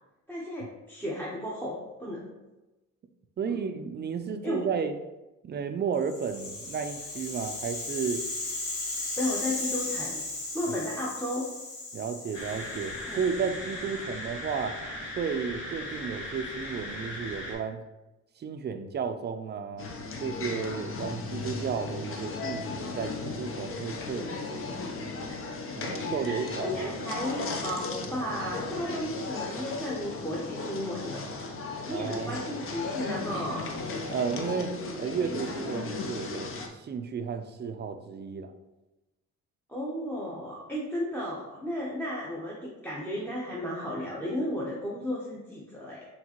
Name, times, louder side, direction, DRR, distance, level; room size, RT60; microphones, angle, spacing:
voice 1, 0.3-2.3 3.5-3.6 4.4-4.7 9.2-10.2 10.5-11.5 13.1-13.2 24.0-24.4 25.3-25.4 26.2-31.3 31.9-33.7 39.7-46.1, left 1 dB, 5° left, -6 dB, 0.8 m, -34 dB
voice 2, 3.4-4.9 5.4-8.2 10.7-10.8 11.9-14.8 15.2-17.8 18.4-19.9 20.2-24.7 25.7-26.9 31.9-32.4 34.1-38.5, right 6 dB, 35° right, 8 dB, 0.4 m, -33 dB
Rattle (instrument), 6.0-14.2, left 2 dB, 85° left, 1.3 m, -36 dB
sound 1, 12.3-17.5, left 1 dB, 70° left, 1.5 m, -38 dB
sound 2, 19.8-36.7, left 3 dB, 45° left, 0.7 m, -36 dB
4.5 x 3.3 x 2.9 m, 1.0 s
cardioid pair, 90°, 30 cm